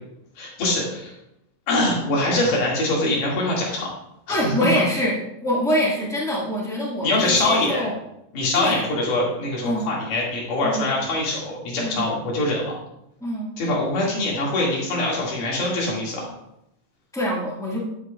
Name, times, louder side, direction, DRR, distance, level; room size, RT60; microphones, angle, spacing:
voice 1, 0.4-1.2 1.7-3.9 4.3-4.5 7.0-7.8 8.3-12.7 13.6-16.3, left 2 dB, 75° left, -3 dB, 3.7 m, -23 dB
voice 2, 4.3-7.9 8.5-8.9 9.6-9.9 10.6-10.9 11.8-12.1 13.2-13.6 17.1-17.9, equal, 5° left, -5 dB, 0.5 m, -25 dB
12.5 x 7.4 x 2.4 m, 0.82 s
omnidirectional pair, 3.7 m